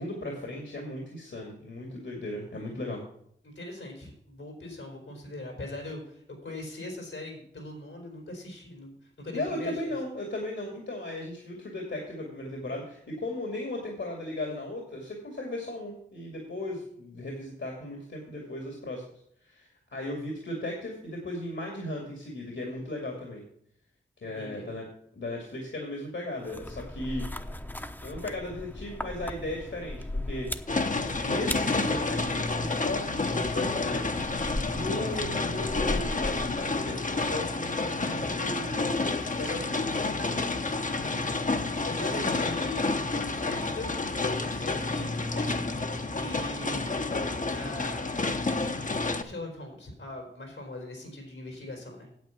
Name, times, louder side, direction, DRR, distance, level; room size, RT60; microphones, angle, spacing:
voice 1, 0.0-3.0 9.3-19.0 19.4-23.4 24.2-24.9 25.1-27.3 28.0-30.0 30.2-30.5 31.2-40.6 42.1-42.5 46.3-46.6, left 1 dB, 70° left, 0 dB, 2.5 m, -36 dB
voice 2, 3.4-10.0 24.4-24.7 40.9-42.9 43.4-46.9 47.5-48.3 49.0-52.1, left 2 dB, 85° left, 1 dB, 4.1 m, -41 dB
sound 1, 26.4-36.8, left 1 dB, 10° left, 0.9 m, -38 dB
sound 2, 30.7-49.2, left 3 dB, 40° left, 1.0 m, -30 dB
9.3 x 8.1 x 5.9 m, 0.69 s
cardioid pair, 45°, 20 cm